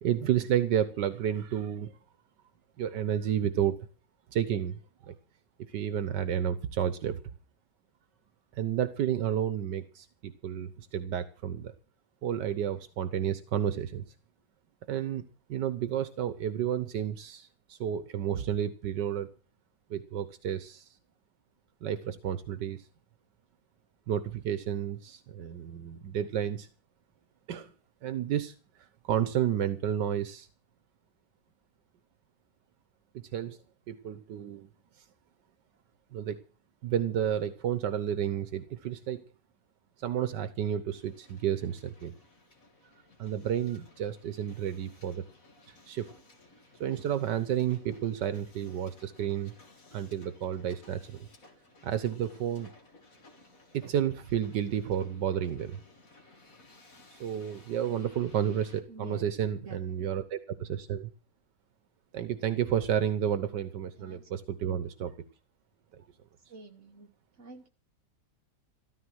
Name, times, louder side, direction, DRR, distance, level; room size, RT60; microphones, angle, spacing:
voice 1, 0.0-1.9 2.8-3.8 4.3-5.1 5.7-7.2 8.5-11.7 12.2-14.1 14.9-15.2 15.5-19.3 19.9-20.9 21.8-22.9 24.1-26.7 27.5-27.7 28.0-28.5 29.0-30.5 33.1-33.6 33.9-34.7 36.1-36.4 36.8-39.2 40.0-42.1 43.2-45.2 45.7-46.1 46.8-49.5 49.9-51.2 51.8-52.7 53.7-55.8 57.1-61.1 62.1-65.1 65.9-66.0, right 9 dB, 80° right, 12 dB, 1.6 m, -31 dB
Hiss, 40.9-58.8, left 2 dB, 50° left, 3.0 m, -58 dB
voice 2, 58.9-60.1 63.3-64.3 66.5-67.7, right 3 dB, 45° right, 3 dB, 2.9 m, -49 dB
14.0 x 13.5 x 6.3 m, 0.36 s
omnidirectional pair, 1.8 m